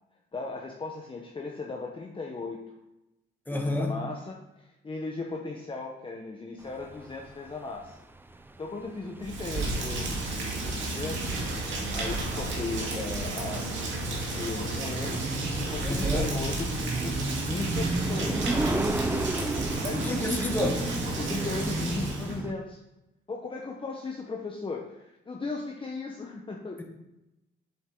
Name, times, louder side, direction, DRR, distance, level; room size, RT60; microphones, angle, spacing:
voice 1, 0.3-2.7 3.5-8.0 8.6-11.3 11.9-18.5 19.7-20.7 21.2-22.8 23.3-26.8, left 3 dB, 25° left, 0 dB, 1.1 m, -37 dB
voice 2, 3.5-4.0 15.8-16.3 19.9-20.8 26.8-26.9, left 1 dB, 10° left, 2 dB, 1.7 m, -29 dB
sound 1, 6.7-22.5, right 2 dB, 10° right, 0.6 m, -34 dB
Rain, 9.2-22.4, right 2 dB, 70° right, 2.4 m, -32 dB
7.7 x 7.7 x 3.9 m, 0.92 s
cardioid pair, 90°, 20 cm